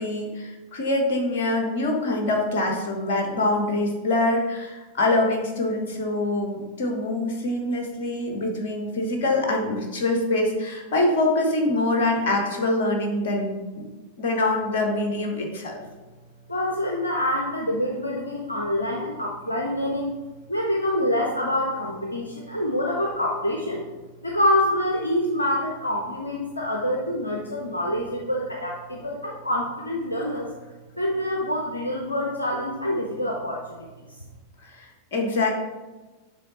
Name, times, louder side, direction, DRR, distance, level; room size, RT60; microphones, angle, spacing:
voice 1, 0.0-13.8 14.2-15.8 34.8-35.5, left 2 dB, 55° left, 2 dB, 1.2 m, -24 dB
voice 2, 16.5-20.1 20.5-23.9 24.2-30.5 31.0-33.6, left 1 dB, 80° left, 0 dB, 0.6 m, -26 dB
7.0 x 3.4 x 4.2 m, 1.2 s
figure-of-eight pair, 90°, 0 cm